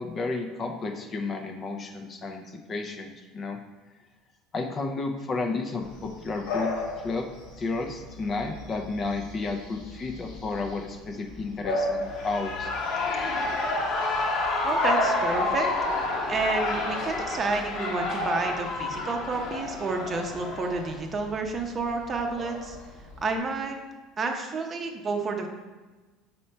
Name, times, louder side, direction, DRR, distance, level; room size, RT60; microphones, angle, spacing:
voice 1, 0.0-3.6 4.5-6.7 7.0-7.3 7.6-12.7, left 3 dB, 30° left, 4 dB, 0.6 m, -32 dB
Bark / Bird vocalization bird call bird song, 5.8-23.4, left 1 dB, 85° left, 2.0 m, -37 dB
Shout / Cheering, 12.0-21.0, left 3 dB, 50° left, 1.1 m, -29 dB
voice 2, 14.6-15.7 16.3-22.8 23.2-23.8 24.2-25.5, right 3 dB, 30° right, 3 dB, 0.7 m, -30 dB
5.3 x 4.3 x 4.4 m, 1.3 s
cardioid pair, 135°, 0 cm